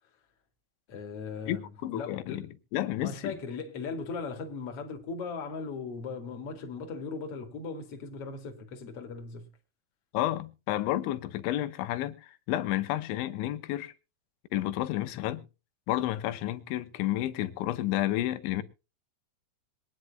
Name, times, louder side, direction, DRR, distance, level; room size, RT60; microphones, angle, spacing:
voice 1, 0.9-2.5 3.0-9.5, left 4 dB, 45° left, 2.3 m, -38 dB
voice 2, 1.8-2.4 2.7-3.3 10.1-13.9 14.5-15.4 15.9-18.6, left 14 dB, 85° left, 3.3 m, -31 dB
23.0 x 9.6 x 2.4 m
omnidirectional pair, 5.3 m